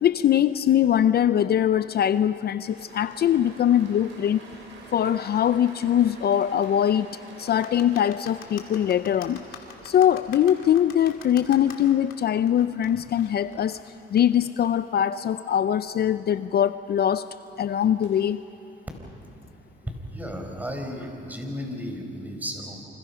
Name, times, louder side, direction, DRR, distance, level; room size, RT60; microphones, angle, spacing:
voice 1, 0.0-4.4 4.9-9.4 9.8-13.8 14.1-17.3 17.6-18.4, left 10 dB, 55° left, 13 dB, 0.5 m, -22 dB
sound 1, 2.6-14.2 17.7-18.2, right 3 dB, 70° right, 5.8 m, -49 dB
sound 2, 7.4-14.9, left 8 dB, 80° left, 2.6 m, -45 dB
voice 2, 20.1-22.8, equal, 10° right, 3 dB, 4.8 m, -34 dB
28.5 x 26.0 x 5.7 m, 3.0 s
cardioid pair, 90°, 20 cm